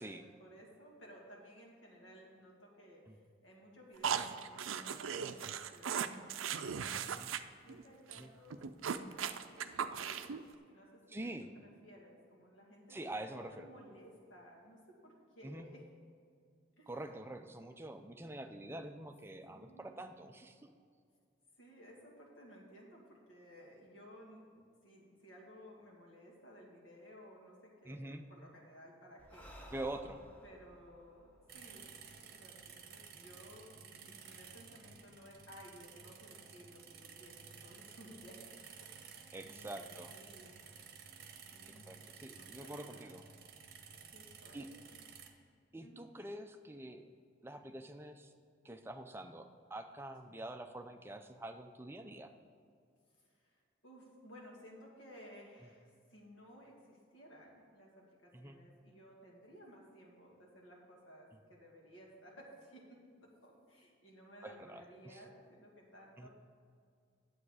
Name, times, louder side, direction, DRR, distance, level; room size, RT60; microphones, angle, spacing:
voice 1, 0.0-6.1 6.4-7.2 7.6-11.3 11.8-13.0 13.3-15.8 16.8-16.9 19.5-20.2 21.6-29.8 30.4-38.4 38.7-40.6 41.5-43.1 43.9-44.7 44.9-45.0 45.8-46.0 50.3-50.4 53.1-66.3, equal, 75° left, -2 dB, 2.2 m, -57 dB
sound 1, 4.0-7.4 7.7-7.8 8.1-8.2 8.5-10.4, right 7 dB, 85° right, 0.5 m, -38 dB
voice 2, 11.1-11.5 12.9-13.7 15.4-15.7 16.9-20.7 27.9-28.3 29.7-30.2 39.3-40.1 41.9-43.2 44.5-44.7 45.7-47.1 47.4-48.3 48.6-52.3 58.3-58.6 64.4-65.2 66.2-66.3, right 1 dB, 10° right, 6 dB, 0.5 m, -46 dB
Breathing, 29.2-32.7, equal, 10° left, 0.9 m, -57 dB
sound 2, 31.5-45.3, right 6 dB, 50° right, 0.9 m, -54 dB
9.6 x 7.8 x 4.9 m, 2.2 s
head